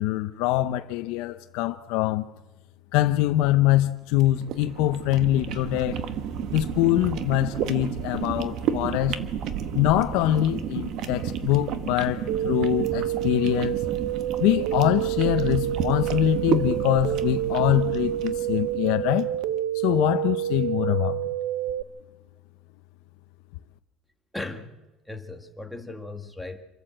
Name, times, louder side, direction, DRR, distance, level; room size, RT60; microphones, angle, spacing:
voice 1, 0.0-2.2 2.9-6.0 6.5-9.2 9.7-13.8 14.4-19.3 19.7-21.2, left 14 dB, 75° left, 0.7 m, -24 dB
sound 1, 4.1-19.4, right 8 dB, 50° right, 1.3 m, -32 dB
sound 2, 12.3-21.8, right 13 dB, 75° right, 0.7 m, -28 dB
voice 2, 24.3-24.7 25.1-26.6, left 2 dB, ahead, 1.6 m, -37 dB
27.0 x 12.0 x 7.8 m
cardioid pair, 160°, 0 cm